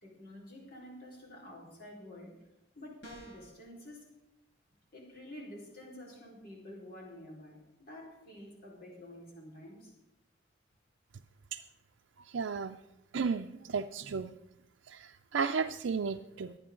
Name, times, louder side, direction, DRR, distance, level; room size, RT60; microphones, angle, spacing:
voice 1, 0.0-2.4 2.7-4.1 4.9-9.9, left 1 dB, 55° left, -3 dB, 4.5 m, -49 dB
sound 1, 3.0-3.6, right 1 dB, 75° left, 4.0 m, -48 dB
voice 2, 12.2-12.8 13.1-14.3 14.9-16.6, right 5 dB, 90° right, 4 dB, 0.5 m, -34 dB
23.5 x 8.8 x 3.8 m, 0.91 s
head